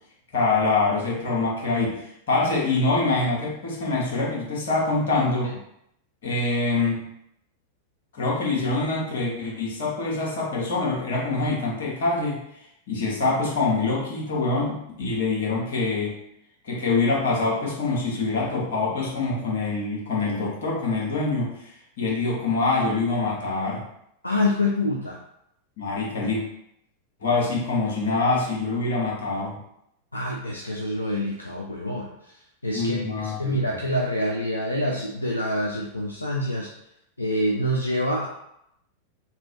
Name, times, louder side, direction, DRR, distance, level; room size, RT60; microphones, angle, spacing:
voice 1, 0.3-5.5 6.2-7.0 8.1-12.4 12.9-16.2 16.6-21.7 22.0-23.8 25.8-26.4 27.2-29.6 32.7-33.8, left 3 dB, 60° left, -4 dB, 1.2 m, -25 dB
voice 2, 24.2-25.2 30.1-32.4 32.6-36.7 37.2-38.3, left 1 dB, 85° left, -2 dB, 0.4 m, -26 dB
3.0 x 2.9 x 2.9 m, 0.77 s
figure-of-eight pair, 90°, 0 cm